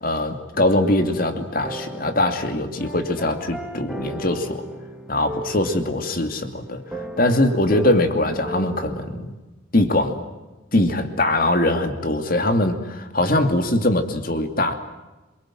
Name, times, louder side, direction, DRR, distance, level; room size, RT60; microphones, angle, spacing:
voice 1, 0.0-4.6 5.1-9.3 9.7-10.2 10.7-14.7, left 1 dB, 45° left, 7 dB, 2.7 m, -22 dB
sound 1, 0.5-9.1, right 1 dB, 5° right, 2.4 m, -36 dB
27.0 x 23.5 x 7.8 m, 1.1 s
head